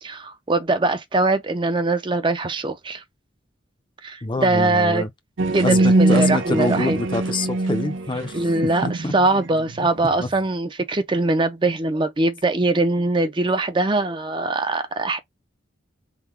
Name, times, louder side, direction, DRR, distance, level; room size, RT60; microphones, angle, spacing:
voice 1, 0.0-3.0 4.0-5.0 5.5-7.0 8.3-15.2, right 2 dB, 25° right, 0.5 m, -22 dB
voice 2, 4.2-5.1 5.6-8.3 8.8-9.1 10.2-10.3, left 2 dB, 25° left, 0.5 m, -25 dB
sound 1, 5.4-10.2, right 2 dB, 80° right, 0.7 m, -22 dB
3.7 x 2.2 x 4.5 m
head